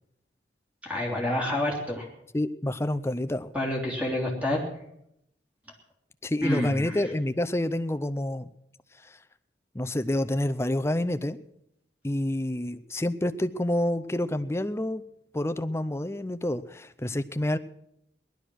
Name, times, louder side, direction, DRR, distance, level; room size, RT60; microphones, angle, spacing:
voice 1, 0.8-2.1 3.5-4.6 6.4-6.9, left 1 dB, 10° right, -1 dB, 3.3 m, -28 dB
voice 2, 2.3-3.5 6.2-8.5 9.0-9.1 9.7-11.4 12.0-15.0 15.3-17.6, left 1 dB, 15° left, 12 dB, 0.6 m, -28 dB
18.0 x 12.0 x 6.3 m, 0.78 s
head